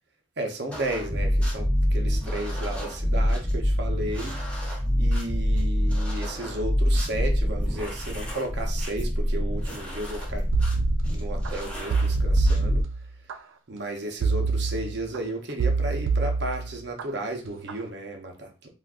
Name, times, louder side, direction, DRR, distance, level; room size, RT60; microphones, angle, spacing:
voice 1, 0.4-4.4 5.0-10.5 11.1-12.8 13.7-18.7, right 1 dB, 60° right, 3 dB, 0.7 m, -34 dB
sound 1, 0.7-12.8, equal, 5° left, 0.7 m, -26 dB
sound 2, 10.5-11.5 11.9-13.4 14.2-15.2 15.6-17.0 17.5-17.8, right 4 dB, 80° right, 0.3 m, -26 dB
3.6 x 2.5 x 2.4 m, 0.35 s
head